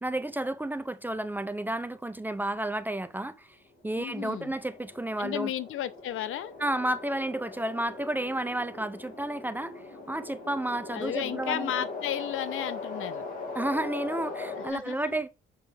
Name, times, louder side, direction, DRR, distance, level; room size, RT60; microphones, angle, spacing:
voice 1, 0.0-3.5 3.8-5.5 6.6-9.8 10.1-11.8 13.5-15.3, right 1 dB, 10° right, 0.4 m, -31 dB
sound 1, 3.9-14.7, left 3 dB, 40° left, 1.9 m, -40 dB
voice 2, 4.0-4.5 5.2-6.5 10.9-13.3 14.6-15.1, left 11 dB, 75° left, 0.6 m, -34 dB
7.0 x 5.0 x 3.4 m
cardioid pair, 150°, 21 cm